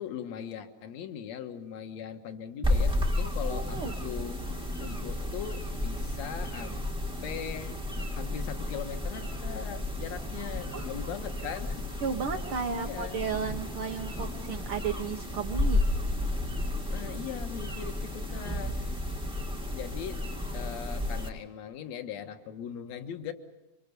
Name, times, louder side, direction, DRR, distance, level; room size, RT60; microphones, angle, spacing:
voice 1, 0.0-4.4 4.8-6.9 7.2-11.9 12.7-13.2 16.9-19.0 19.7-20.2 20.5-23.3, left 9 dB, 55° left, 6 dB, 2.3 m, -40 dB
sound 1, 2.6-21.3, left 1 dB, 5° right, 0.7 m, -32 dB
voice 2, 3.4-3.9 10.7-10.9 12.0-15.8, right 6 dB, 75° right, 4 dB, 1.2 m, -34 dB
26.5 x 25.5 x 6.8 m, 1.0 s
omnidirectional pair, 4.2 m